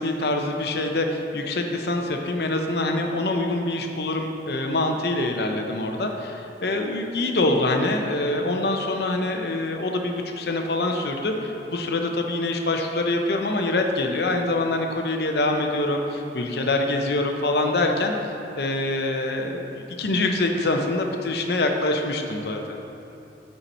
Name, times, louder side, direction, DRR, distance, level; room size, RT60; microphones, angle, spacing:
voice 1, 0.0-18.1 18.6-22.8, left 2 dB, 65° left, 3 dB, 0.7 m, -25 dB
8.2 x 5.7 x 4.3 m, 3.0 s
head